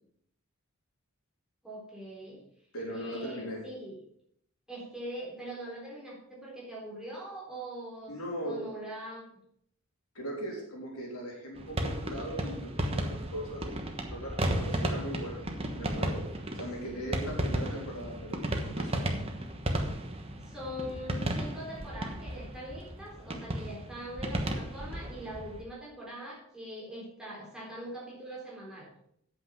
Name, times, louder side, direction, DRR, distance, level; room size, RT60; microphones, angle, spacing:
voice 1, 1.6-2.4 2.9-4.0 4.7-9.3 16.8-17.3 20.4-28.9, right 1 dB, 5° right, -6 dB, 3.8 m, -42 dB
voice 2, 2.7-3.6 8.1-8.6 10.2-15.5 15.8-16.3 16.5-19.2, equal, 85° left, -1 dB, 3.5 m, -39 dB
sound 1, 11.6-25.6, right 1 dB, 25° right, 1.2 m, -34 dB
8.8 x 8.1 x 6.0 m, 0.71 s
head